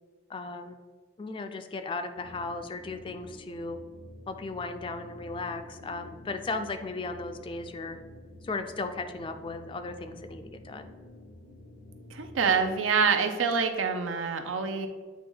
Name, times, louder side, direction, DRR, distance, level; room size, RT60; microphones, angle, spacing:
voice 1, 0.3-0.8 1.2-3.8 4.3-8.0 8.4-10.9, left 3 dB, 25° left, 8 dB, 0.3 m, -36 dB
sound 1, 2.2-12.8, left 1 dB, 80° left, 0.8 m, -49 dB
voice 2, 12.1-14.9, right 5 dB, 90° right, 7 dB, 0.6 m, -26 dB
8.4 x 3.0 x 3.8 m, 1.6 s
head